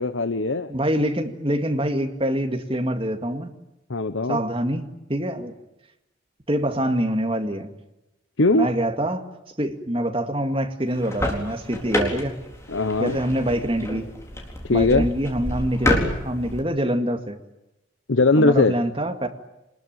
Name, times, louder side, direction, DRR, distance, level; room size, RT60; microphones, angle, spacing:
voice 1, 0.0-0.7 3.9-4.4 8.4-8.7 12.7-13.2 14.6-15.1 18.1-18.7, left 2 dB, 65° left, 10 dB, 0.9 m, -20 dB
voice 2, 0.7-3.5 4.3-5.5 6.5-7.7 8.5-9.2 9.6-12.4 13.0-14.1 14.7-17.4 18.4-19.3, right 1 dB, 25° right, 5 dB, 2.1 m, -25 dB
sound 1, 10.9-16.6, left 1 dB, 15° left, 4.1 m, -28 dB
26.0 x 20.5 x 9.1 m, 0.94 s
head